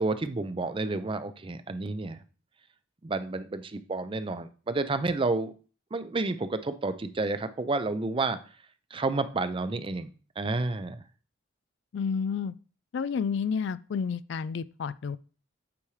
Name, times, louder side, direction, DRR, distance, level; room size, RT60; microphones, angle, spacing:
voice 1, 0.0-2.2 3.0-5.5 5.9-8.4 8.9-11.0, right 3 dB, 25° right, 0.5 m, -30 dB
voice 2, 11.9-12.5 12.9-15.2, left 6 dB, 65° left, 0.3 m, -30 dB
8.5 x 5.0 x 3.2 m
head